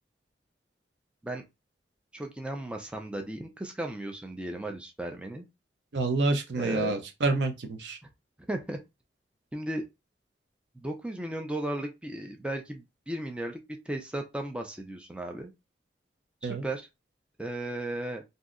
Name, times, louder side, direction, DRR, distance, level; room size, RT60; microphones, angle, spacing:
voice 1, 2.1-5.5 6.6-6.9 8.0-8.1 8.5-8.8 9.5-9.8 10.7-13.6 13.9-15.5 16.4-16.8 17.4-18.2, right 1 dB, 5° right, 0.4 m, -35 dB
voice 2, 5.9-8.0 16.4-16.6, right 3 dB, 85° right, 0.6 m, -28 dB
2.7 x 2.1 x 3.6 m
head